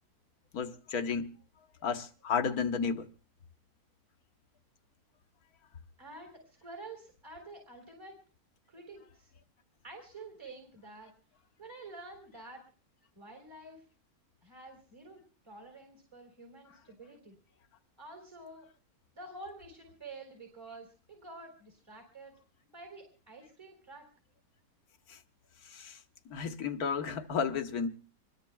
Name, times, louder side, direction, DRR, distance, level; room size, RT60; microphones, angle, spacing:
voice 1, 0.5-1.3 1.8-3.1 25.1-25.2 25.7-26.0 26.3-27.9, left 6 dB, 85° left, 1.6 m, -32 dB
voice 2, 6.0-8.2 8.7-9.3 9.8-11.1 11.6-12.6 13.2-13.8 14.4-17.4 18.0-18.7 19.1-22.3 22.7-24.1, right 2 dB, 15° right, 3.9 m, -49 dB
26.0 x 20.5 x 2.3 m
omnidirectional pair, 1.5 m